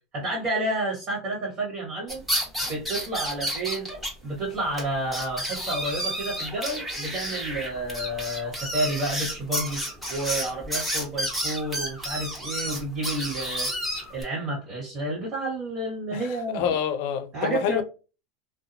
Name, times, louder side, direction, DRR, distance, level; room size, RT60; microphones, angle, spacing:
voice 1, 0.1-2.2 2.6-3.9 4.2-9.8 10.1-13.7 14.1-16.7 17.3-17.8, right 1 dB, 40° right, 1.4 m, -30 dB
sound 1, 2.1-4.1 4.4-4.5 4.8-4.9 5.1-14.2, equal, 10° right, 1.4 m, -31 dB
voice 2, 16.1-17.8, left 9 dB, 70° left, 0.4 m, -27 dB
2.7 x 2.1 x 2.6 m
hypercardioid pair, 105°, 0 cm